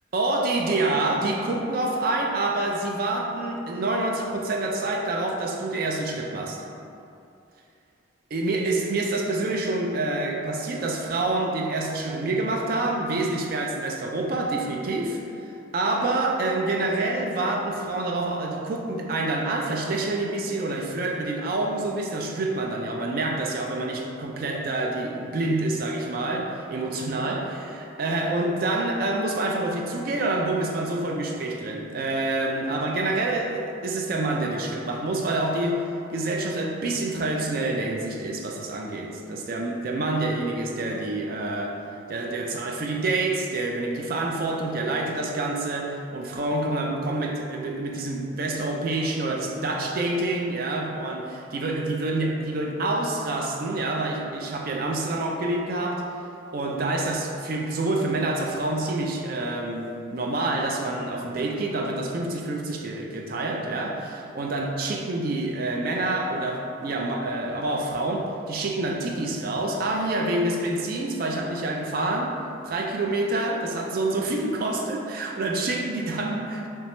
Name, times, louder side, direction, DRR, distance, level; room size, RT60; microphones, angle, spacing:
voice 1, 0.1-6.6 8.3-15.2 15.7-35.8 36.1-41.8 42.1-56.0 56.5-72.4 72.6-76.7, right 2 dB, 45° right, 1 dB, 0.3 m, -27 dB
3.3 x 2.9 x 3.1 m, 2.6 s
head